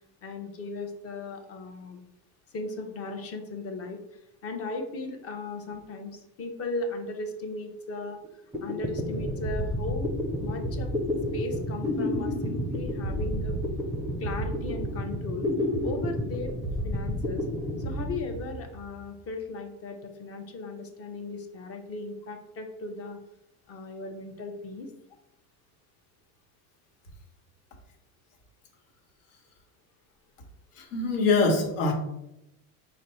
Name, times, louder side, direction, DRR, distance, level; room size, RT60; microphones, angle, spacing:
voice 1, 0.2-2.0 2.5-8.2 8.6-10.9 11.3-13.6 14.2-15.5 15.8-16.6 16.8-17.5 17.8-23.2 23.7-24.9, left 2 dB, 30° left, 5 dB, 0.6 m, -37 dB
sound 1, 8.2-8.3 8.5-19.0, left 1 dB, 5° right, 0.4 m, -30 dB
voice 2, 30.8-31.9, left 3 dB, 75° left, 2 dB, 1.2 m, -24 dB
5.0 x 2.1 x 4.2 m, 0.86 s
supercardioid pair, 125°, 44 cm